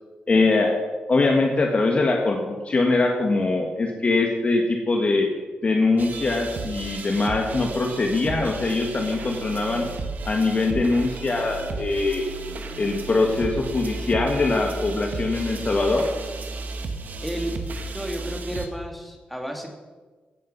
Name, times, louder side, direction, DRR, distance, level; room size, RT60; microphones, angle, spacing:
voice 1, 0.3-0.8 1.1-5.3 5.6-9.8 10.2-12.2 12.8-16.1, left 3 dB, 40° left, 2 dB, 1.7 m, -22 dB
sound 1, 6.0-18.7, right 3 dB, 65° right, 1.5 m, -34 dB
voice 2, 17.2-17.5 17.9-19.7, equal, ahead, 2 dB, 2.4 m, -32 dB
16.0 x 8.9 x 5.5 m, 1.3 s
wide cardioid pair, 110°, 3 cm